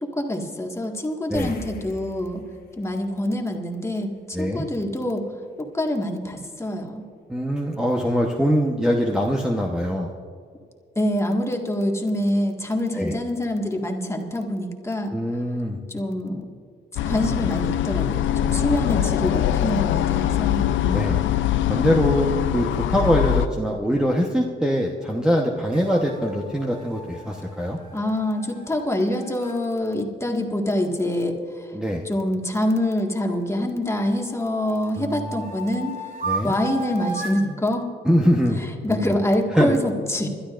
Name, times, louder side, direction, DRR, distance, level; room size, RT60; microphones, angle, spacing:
voice 1, 0.0-2.4 2.8-5.2 5.6-7.0 10.9-15.1 15.9-16.5 17.0-20.7 27.9-31.7 32.0-35.9 36.4-37.9 38.6-40.3, left 1 dB, 15° left, 2 dB, 1.8 m, -25 dB
sound 1, 1.3-4.1 4.4-4.6 7.5-7.6 7.9-8.0, left 4 dB, 55° left, 1.6 m, -42 dB
voice 2, 4.3-4.6 7.3-10.1 12.9-13.1 15.1-15.8 20.8-21.2 21.7-27.8 31.7-32.1 35.0-35.4 36.3-36.5 38.0-38.6 38.9-39.1 39.6-39.8, equal, 5° right, -1 dB, 1.0 m, -23 dB
sound 2, 17.0-23.5, left 11 dB, 75° left, 0.6 m, -22 dB
sound 3, 25.7-29.6 32.5-33.8 34.3-37.5, right 2 dB, 40° right, 2.6 m, -36 dB
27.5 x 12.0 x 2.5 m, 2.2 s
cardioid pair, 90°, 20 cm